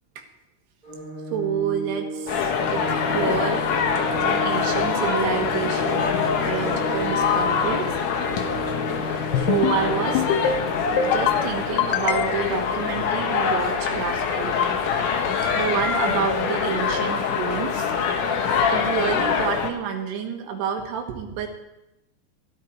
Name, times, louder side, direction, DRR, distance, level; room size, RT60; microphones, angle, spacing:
Organ, 0.8-11.8, right 1 dB, 10° left, 2.8 m, -34 dB
voice 1, 1.3-2.8 3.1-3.6 3.9-7.9 9.4-10.3 11.0-14.5 15.6-17.9 18.7-21.5, right 7 dB, 80° right, 3 dB, 3.6 m, -28 dB
sound 1, 2.3-19.7, left 6 dB, 65° left, 2.3 m, -24 dB
sound 2, 9.3-9.8 10.2-10.6 11.0-11.4 11.8-12.6, left 8 dB, 80° left, 2.7 m, -23 dB
15.0 x 12.5 x 4.6 m, 0.91 s
omnidirectional pair, 4.8 m